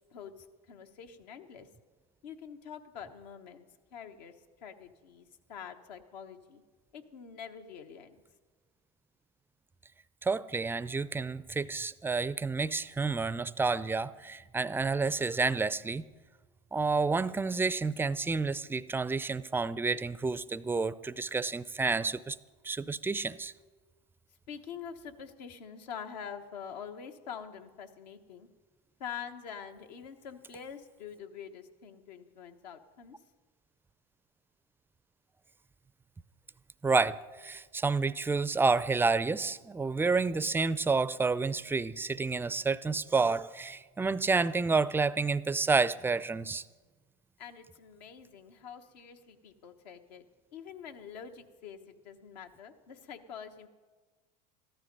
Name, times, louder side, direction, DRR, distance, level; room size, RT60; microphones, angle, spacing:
voice 1, 0.1-1.7 2.2-6.6 6.9-8.2 24.5-28.5 29.0-33.2 47.4-50.2 50.5-53.7, left 7 dB, 80° left, 6 dB, 1.2 m, -46 dB
voice 2, 10.2-16.0 16.7-22.4 22.6-23.5 36.8-46.6, right 4 dB, 10° right, 17 dB, 0.4 m, -29 dB
14.0 x 12.5 x 5.3 m, 1.3 s
hypercardioid pair, 95°, 21 cm